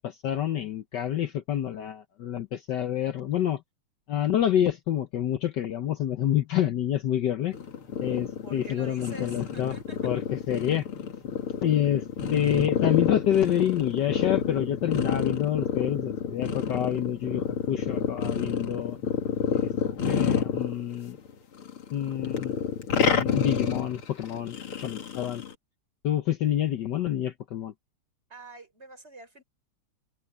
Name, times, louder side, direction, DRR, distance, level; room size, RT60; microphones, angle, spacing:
voice 1, 0.0-3.6 4.1-7.5 8.0-9.8 10.0-10.2 10.5-10.9 11.6-12.0 12.3-19.0 19.5-19.7 20.1-21.2 21.9-22.5 23.2-25.4 26.0-27.7, left 10 dB, 65° left, 1.4 m, -27 dB
sound 1, 7.5-21.3 21.6-25.5, left 7 dB, 85° left, 3.0 m, -29 dB
voice 2, 8.4-10.2 28.3-29.4, right 3 dB, 30° right, 4.7 m, -46 dB
omnidirectional pair, 2.3 m